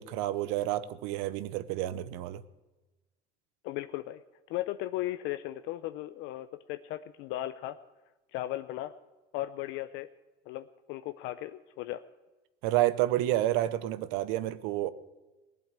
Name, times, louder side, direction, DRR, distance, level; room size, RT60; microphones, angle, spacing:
voice 1, 0.0-2.4 12.6-14.9, right 14 dB, 90° right, 0.7 m, -29 dB
voice 2, 3.6-4.2 4.5-7.8 8.3-8.9 9.3-10.1 10.5-12.0, left 15 dB, 75° left, 0.6 m, -36 dB
18.5 x 8.1 x 8.8 m
cardioid pair, 110°, 20 cm